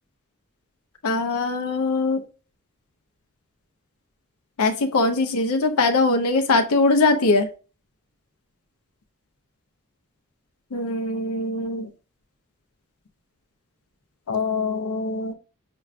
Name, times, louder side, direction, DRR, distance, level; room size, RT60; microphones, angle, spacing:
voice 1, 1.0-2.2 4.6-7.5 10.7-11.9 14.3-15.3, left 3 dB, 90° left, 6 dB, 0.5 m, -22 dB
5.7 x 2.2 x 2.4 m, 0.35 s
head